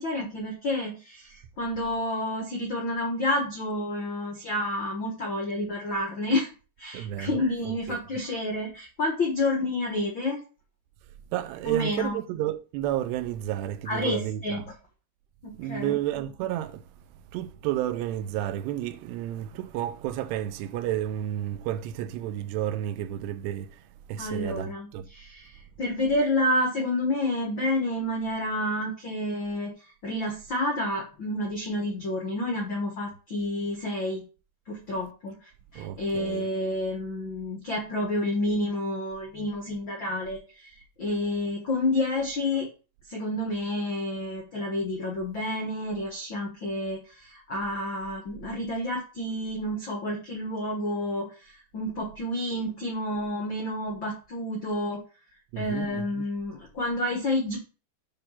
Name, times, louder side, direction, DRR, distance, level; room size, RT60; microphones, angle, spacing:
voice 1, 0.0-6.5 6.8-10.4 11.6-12.2 13.8-14.6 15.4-15.9 24.2-29.7 30.0-34.2 34.7-40.7 41.0-42.7 43.1-55.0 55.6-57.6, left 1 dB, 85° left, 1.0 m, -29 dB
voice 2, 6.9-8.0 11.3-14.6 15.5-16.9 17.3-25.1 35.8-36.5 55.5-56.2, right 12 dB, 85° right, 2.8 m, -31 dB
9.0 x 3.4 x 5.7 m
omnidirectional pair, 4.8 m